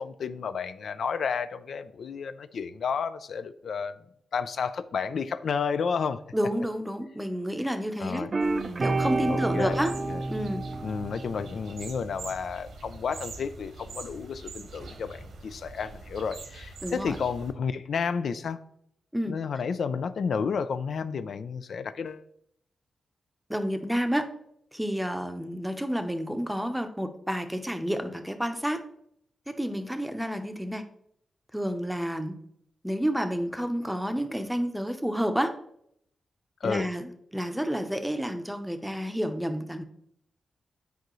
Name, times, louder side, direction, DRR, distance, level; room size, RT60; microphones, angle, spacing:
voice 1, 0.0-3.9 4.3-6.2 8.0-8.3 9.3-9.8 10.1-10.2 10.8-18.6 19.3-22.2 36.6-36.9, left 6 dB, 70° left, 12 dB, 0.4 m, -31 dB
voice 2, 6.3-8.3 8.8-10.0 10.3-10.6 16.8-17.2 19.1-19.4 23.5-24.3 24.7-28.8 29.5-30.8 31.5-32.4 32.8-35.5 36.6-39.8, equal, 5° right, 7 dB, 0.7 m, -30 dB
sound 1, 8.3-11.8, right 3 dB, 35° right, 0.4 m, -29 dB
sound 2, 8.4-17.5, right 3 dB, 85° right, 1.1 m, -44 dB
9.1 x 4.8 x 3.1 m, 0.71 s
wide cardioid pair, 105°, 0 cm